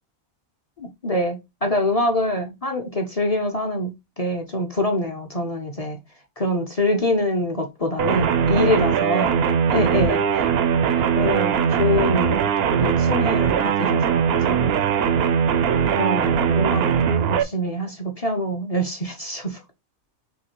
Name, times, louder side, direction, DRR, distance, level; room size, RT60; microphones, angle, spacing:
voice 1, 0.8-6.0 6.4-9.3 9.7-10.5 10.9-12.5 12.8-14.7 16.0-16.9 17.3-19.6, left 1 dB, 40° left, 0.5 m, -25 dB
sound 1, 8.0-17.4, right 7 dB, 65° right, 0.6 m, -20 dB
6.3 x 2.8 x 2.9 m
omnidirectional pair, 1.5 m